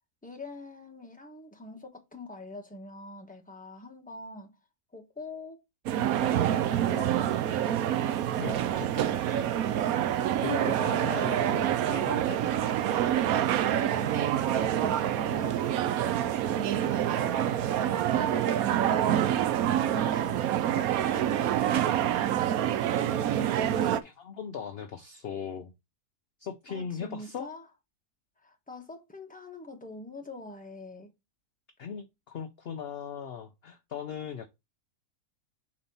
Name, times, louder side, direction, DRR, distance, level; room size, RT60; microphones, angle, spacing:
voice 1, 0.2-4.5 4.9-5.6 6.2-7.6 10.5-10.7 13.9-14.2 14.5-16.2 16.5-19.3 19.8-22.7 26.7-27.7 28.4-31.1, left 2 dB, 5° left, 1.1 m, -44 dB
sound 1, 5.9-24.0, right 11 dB, 75° right, 1.1 m, -27 dB
voice 2, 8.4-9.5 9.8-10.0 10.4-12.8 23.7-25.7 26.4-27.5 31.8-34.5, left 7 dB, 55° left, 0.7 m, -39 dB
5.3 x 4.1 x 5.4 m
omnidirectional pair, 1.6 m